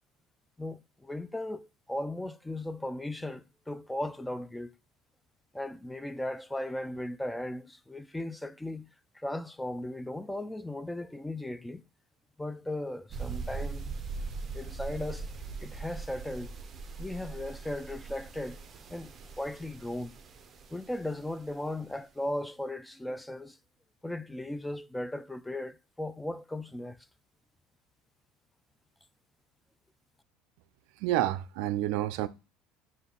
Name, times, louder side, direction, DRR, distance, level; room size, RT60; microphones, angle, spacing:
voice 1, 0.6-4.7 5.5-8.9 9.1-11.8 12.4-13.9 14.5-15.3 15.6-16.5 17.0-18.6 18.9-20.2 20.7-23.6 24.0-27.1, left 1 dB, 5° left, 0.3 m, -37 dB
sound 1, 13.1-21.5, right 4 dB, 35° right, 0.6 m, -41 dB
voice 2, 31.0-32.3, right 14 dB, 75° right, 0.3 m, -29 dB
5.3 x 2.6 x 3.7 m
supercardioid pair, 90°, 0 cm